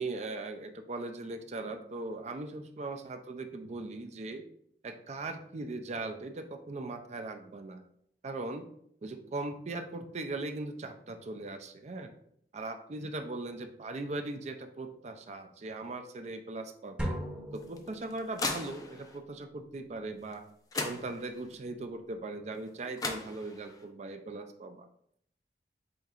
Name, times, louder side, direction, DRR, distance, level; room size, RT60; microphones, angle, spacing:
voice 1, 0.0-4.4 4.8-7.8 8.2-8.6 9.0-12.1 12.5-17.1 17.5-20.4 20.7-24.9, right 2 dB, 40° right, 7 dB, 0.4 m, -39 dB
sound 1, 17.0-18.7, equal, 5° right, 0.8 m, -38 dB
sound 2, 17.6-19.2 20.3-20.4 20.7-21.5 22.7-22.8 23.0-23.8, left 3 dB, 20° left, 0.4 m, -37 dB
7.8 x 2.8 x 2.4 m, 0.70 s
head